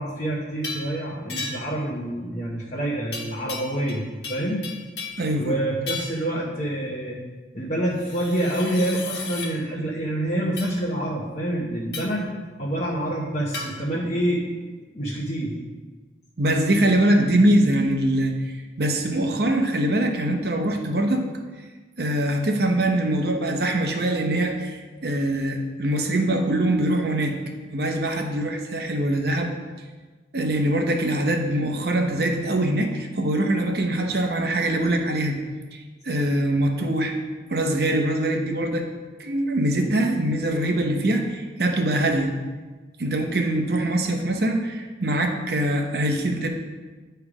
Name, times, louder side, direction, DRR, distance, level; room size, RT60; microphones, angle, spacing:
voice 1, 0.0-4.6 5.4-7.2 7.5-12.3 12.6-14.4 14.7-15.6, right 1 dB, 40° left, -5 dB, 1.0 m, -27 dB
sound 1, 0.6-0.9 1.3-1.8 3.1-4.0 4.2-5.3 5.9-6.2 8.0-9.5 10.6-10.8 11.9-12.2 13.5-13.7, left 4 dB, 70° left, 1.4 m, -34 dB
voice 2, 5.2-5.6 16.4-21.2 22.0-27.4 27.7-29.5 30.3-35.4 35.7-37.1 37.5-38.9 39.2-42.3 43.0-46.5, right 1 dB, 60° right, 3 dB, 0.9 m, -23 dB
10.0 x 3.4 x 4.9 m, 1.3 s
head